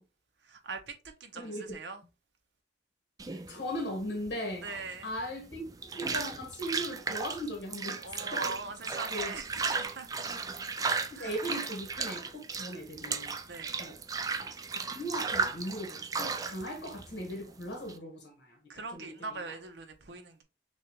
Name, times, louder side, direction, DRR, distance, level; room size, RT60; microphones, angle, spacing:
voice 1, 0.4-2.0 4.6-5.1 8.0-10.3 11.1-11.4 13.4-13.8 18.7-20.4, right 4 dB, 80° right, 0.9 m, -42 dB
voice 2, 1.3-1.8 3.3-4.6 5.0-8.0 8.3-8.4 9.1-9.3 10.3-10.4 11.1-13.3 13.8-14.0 14.9-18.6 18.9-19.1, equal, 75° left, 1.5 m, -38 dB
sound 1, 3.2-18.0, right 4 dB, 20° right, 0.3 m, -35 dB
6.2 x 2.5 x 3.0 m
head